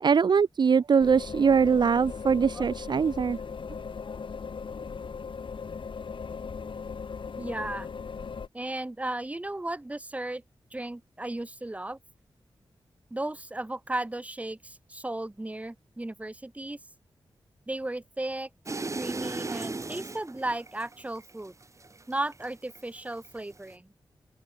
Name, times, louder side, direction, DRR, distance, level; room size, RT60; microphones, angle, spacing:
voice 1, 0.0-3.4, right 6 dB, 55° right, 0.5 m, -22 dB
sound 1, 1.0-8.5, left 5 dB, 65° left, 4.5 m, -38 dB
voice 2, 7.4-7.9 8.5-10.4 10.7-12.0 13.1-16.8 17.7-18.5 19.0-21.5 22.1-23.9, right 1 dB, 15° right, 1.5 m, -35 dB
sound 2, 18.7-22.8 23.1-23.7, right 3 dB, 35° right, 3.0 m, -36 dB
open air
wide cardioid pair, 110°, 9 cm